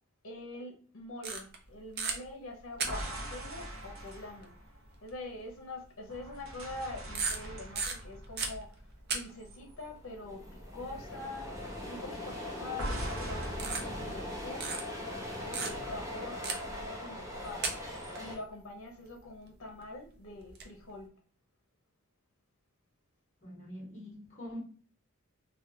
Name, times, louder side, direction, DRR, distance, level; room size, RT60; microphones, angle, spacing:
voice 1, 0.2-4.5 5.0-11.5 11.9-14.8 15.4-17.7 18.2-21.1, left 2 dB, 70° left, 0.7 m, -45 dB
sound 1, 1.2-1.7 2.0-2.2 2.8-3.3 4.4-4.5 5.1-5.2 6.5-6.8 7.2-9.2 9.4-9.6 12.5-12.8 13.6-14.3 14.6-14.8 15.5-16.0 16.4-16.8 17.5-18.2 19.8-19.9 20.4-20.6, right 5 dB, 50° right, 0.6 m, -35 dB
sound 2, 2.7-5.6 6.1-9.5 9.8-10.1 12.8-14.4, right 1 dB, 75° right, 0.8 m, -41 dB
sound 3, 9.6-9.7 9.9-18.4, left 1 dB, 15° right, 0.9 m, -41 dB
voice 2, 23.4-24.6, equal, 35° left, 1.1 m, -44 dB
3.3 x 2.2 x 2.7 m
head